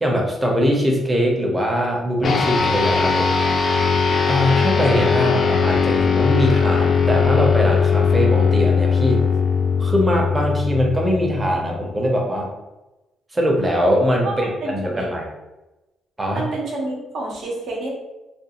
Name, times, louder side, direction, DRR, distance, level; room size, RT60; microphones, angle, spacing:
voice 1, 0.0-3.3 4.1-9.2 9.8-12.5 13.3-15.3 16.2-16.5, equal, 20° right, 0 dB, 0.7 m, -21 dB
sound 1, 2.2-11.9, left 5 dB, 50° left, 0.4 m, -19 dB
voice 2, 14.2-15.1 16.3-17.9, right 2 dB, 70° right, -2 dB, 0.8 m, -28 dB
2.5 x 2.3 x 2.9 m, 1.0 s
cardioid pair, 90°, 0 cm